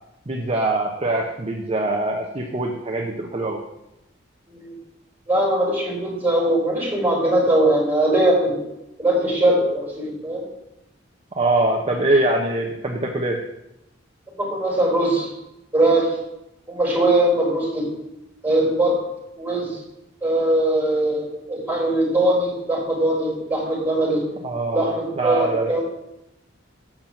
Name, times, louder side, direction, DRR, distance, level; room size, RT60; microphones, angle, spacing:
voice 1, 0.3-3.6 11.3-13.4 24.4-25.8, right 2 dB, 30° right, 1 dB, 0.8 m, -23 dB
voice 2, 5.3-8.6 9.0-10.4 14.4-15.3 15.7-16.1 16.7-17.9 18.4-18.9 19.4-19.8 20.2-24.2 24.7-25.8, right 1 dB, 10° right, -4 dB, 4.2 m, -20 dB
7.3 x 6.0 x 7.3 m, 0.88 s
head